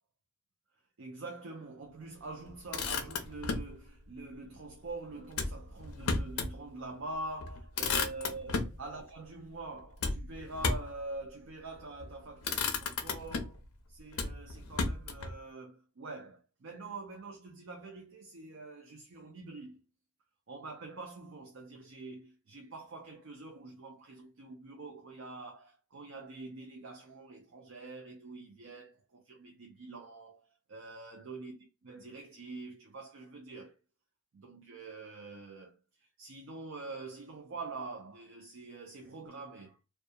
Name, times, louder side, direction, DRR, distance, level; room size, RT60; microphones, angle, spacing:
voice 1, 1.0-13.6 13.9-19.8 20.5-31.5 31.8-33.7 34.3-39.8, right 3 dB, 60° right, 0.5 m, -45 dB
Motor vehicle (road), 2.5-3.7 5.3-6.6 7.0-7.1 7.4-8.8 10.0-11.0 11.8-12.1 12.4-13.7 14.1-15.3, left 4 dB, 80° left, 0.5 m, -34 dB
2.7 x 2.2 x 2.2 m
head